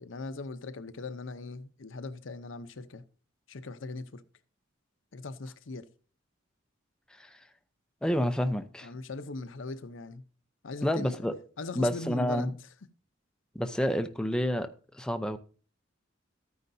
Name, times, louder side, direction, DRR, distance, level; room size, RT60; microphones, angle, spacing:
voice 1, 0.0-3.0 3.5-4.2 5.1-5.9 8.8-10.2 10.6-11.3 11.6-12.5, left 3 dB, 75° left, 0.7 m, -40 dB
voice 2, 8.0-8.9 10.8-11.3 11.8-12.5 13.5-15.4, equal, 5° left, 0.6 m, -29 dB
13.0 x 9.5 x 2.7 m
head